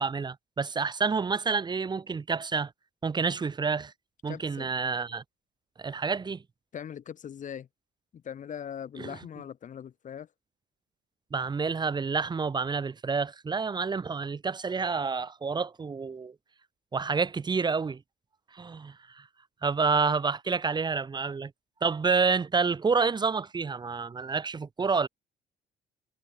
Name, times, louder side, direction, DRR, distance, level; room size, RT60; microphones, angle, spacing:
voice 1, 0.0-2.7 3.0-3.9 4.2-5.2 5.8-6.4 9.0-9.2 11.3-16.3 16.9-18.0 18.5-19.3 19.6-21.5 21.8-25.1, right 5 dB, 25° right, 1.3 m, -28 dB
voice 2, 4.3-4.7 6.7-7.7 8.1-10.3, left 8 dB, 50° left, 6.2 m, -40 dB
cardioid pair, 110°, 17 cm